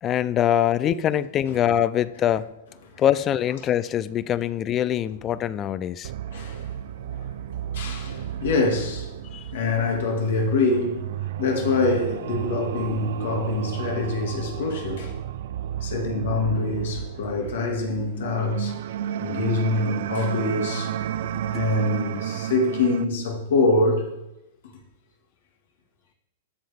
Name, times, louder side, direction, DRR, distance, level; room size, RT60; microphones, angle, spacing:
voice 1, 0.0-2.5 3.0-6.1 9.3-9.5 21.5-21.6, left 10 dB, 20° left, 0.3 m, -23 dB
sound 1, 6.0-23.0, right 11 dB, 60° right, 0.4 m, -32 dB
voice 2, 6.3-6.8 7.1-15.1 15.8-18.8 19.2-21.0 21.5-24.1, left 3 dB, 75° left, 2.1 m, -25 dB
13.0 x 7.6 x 3.5 m
supercardioid pair, 165°, 0 cm